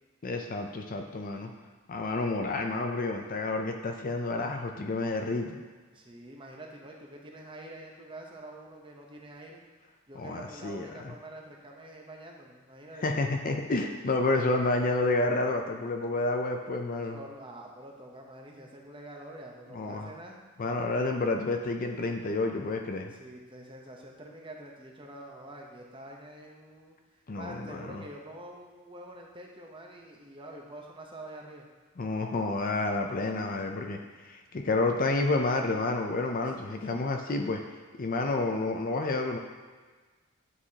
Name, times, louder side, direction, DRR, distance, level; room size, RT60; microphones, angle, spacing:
voice 1, 0.2-1.5 1.9-5.6 10.2-11.1 13.0-17.2 19.7-20.1 20.6-23.1 27.3-28.0 32.0-34.0 34.2-37.6 38.0-39.4, left 2 dB, 40° left, 3 dB, 0.5 m, -29 dB
voice 2, 5.9-9.6 10.1-13.2 17.1-20.4 23.1-27.0 27.4-31.7 36.6-37.1, right 1 dB, 25° right, 0 dB, 0.8 m, -46 dB
9.8 x 4.7 x 2.8 m, 1.4 s
head